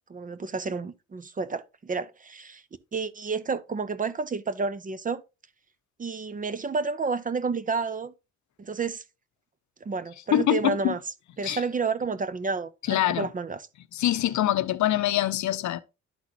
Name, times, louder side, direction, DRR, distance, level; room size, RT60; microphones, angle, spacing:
voice 1, 0.1-2.6 2.9-5.2 6.0-8.1 8.6-9.0 9.8-11.0 11.4-13.7, right 4 dB, 25° right, 0.6 m, -30 dB
voice 2, 10.3-10.9 11.4-11.6 12.9-13.3 13.9-15.8, left 13 dB, 70° left, 0.7 m, -24 dB
11.5 x 4.1 x 2.9 m
cardioid pair, 90°, 30 cm